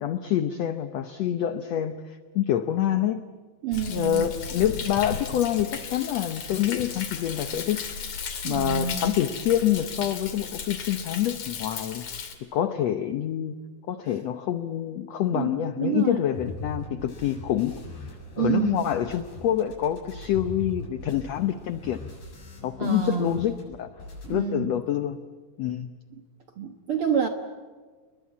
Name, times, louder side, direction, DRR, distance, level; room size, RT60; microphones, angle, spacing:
voice 1, 0.0-3.2 3.9-7.8 8.4-12.0 12.5-13.6 13.9-17.8 18.4-22.0 22.6-23.9 24.3-25.2 25.6-25.9, left 11 dB, 85° left, 10 dB, 1.4 m, -26 dB
voice 2, 3.6-4.3 8.4-9.1 15.3-16.2 18.4-18.9 22.8-23.4 24.2-24.8 26.6-27.3, right 9 dB, 60° right, 6 dB, 1.5 m, -28 dB
Thunder, 3.7-12.3, left 6 dB, 50° left, 3.4 m, -35 dB
sound 1, 16.3-23.6 23.9-24.3, left 1 dB, 70° left, 9.3 m, -41 dB
29.5 x 22.0 x 8.4 m, 1.5 s
omnidirectional pair, 4.3 m